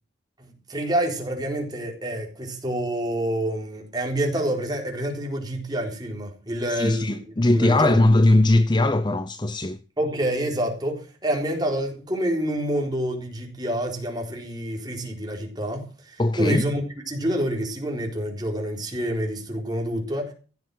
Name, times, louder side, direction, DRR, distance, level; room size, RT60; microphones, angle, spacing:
voice 1, 0.4-7.2 7.5-8.1 10.0-20.3, right 1 dB, 20° right, 3.9 m, -27 dB
voice 2, 6.7-9.8 16.2-16.6, left 2 dB, 25° left, 0.6 m, -20 dB
16.0 x 7.1 x 7.7 m
head